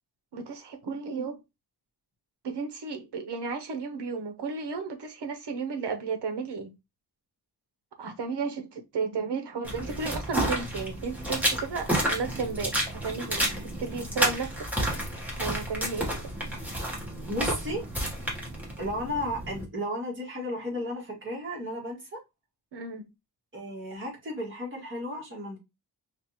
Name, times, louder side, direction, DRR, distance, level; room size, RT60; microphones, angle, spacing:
voice 1, 0.3-1.4 2.4-6.7 8.0-13.5 13.8-14.7 15.4-16.2 22.7-23.1, right 4 dB, 80° right, 0.8 m, -33 dB
sound 1, 9.6-19.6, right 1 dB, 5° right, 1.1 m, -31 dB
voice 2, 17.3-17.8 18.8-22.2 23.5-25.6, equal, 30° right, 1.7 m, -34 dB
5.1 x 2.5 x 2.9 m
wide cardioid pair, 160°, 41 cm